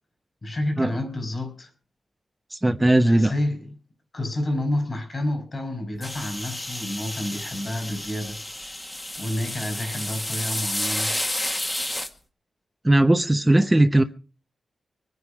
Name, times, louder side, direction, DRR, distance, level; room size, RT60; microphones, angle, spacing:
voice 1, 0.4-1.7 3.0-3.8 4.1-8.4 9.2-11.1, left 1 dB, 35° left, 5.3 m, -29 dB
voice 2, 2.5-3.3 12.8-14.0, right 1 dB, 15° right, 0.9 m, -18 dB
sound 1, 6.0-12.1, left 1 dB, 20° left, 1.9 m, -31 dB
23.5 x 9.7 x 4.8 m
wide cardioid pair, 115°, 0 cm